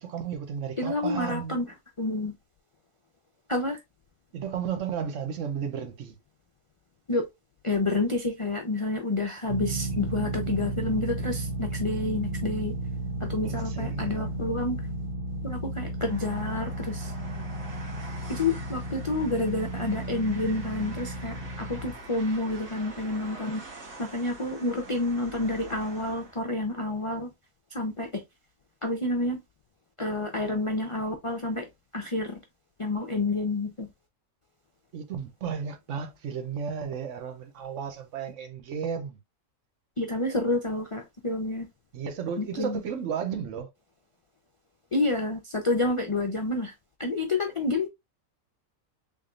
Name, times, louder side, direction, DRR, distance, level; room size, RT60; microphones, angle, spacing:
voice 1, 0.0-1.6 4.3-6.2 13.4-14.2 17.3-17.4 34.9-39.2 41.9-43.7, right 7 dB, 70° right, 1.0 m, -33 dB
voice 2, 0.8-2.3 3.5-3.8 7.1-7.3 7.6-12.7 13.2-14.8 15.4-17.1 18.3-23.6 24.0-27.3 27.7-28.2 28.8-29.4 30.0-31.7 31.9-32.4 32.8-33.9 40.0-41.7 42.4-42.8 44.9-46.7 47.0-47.9, left 2 dB, 45° left, 0.4 m, -29 dB
sound 1, 9.5-21.9, right 1 dB, 45° right, 1.0 m, -33 dB
Train, 16.0-26.5, right 2 dB, 90° right, 2.2 m, -45 dB
3.6 x 3.5 x 2.4 m
omnidirectional pair, 1.4 m